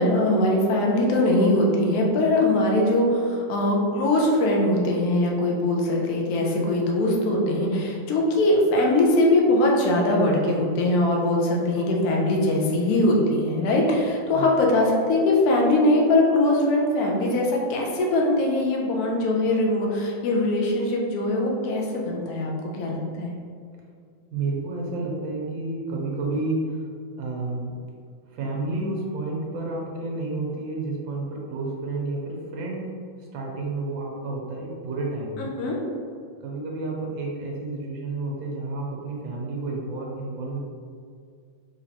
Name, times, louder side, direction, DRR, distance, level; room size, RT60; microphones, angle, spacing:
voice 1, 0.0-22.5 22.8-23.4 35.4-35.8, left 1 dB, 65° left, -1 dB, 1.0 m, -21 dB
voice 2, 24.3-26.6 27.2-27.7 28.3-32.9 33.3-35.5 36.4-40.6, right 2 dB, 80° right, -2 dB, 1.4 m, -30 dB
3.8 x 3.2 x 2.8 m, 2.2 s
omnidirectional pair, 2.1 m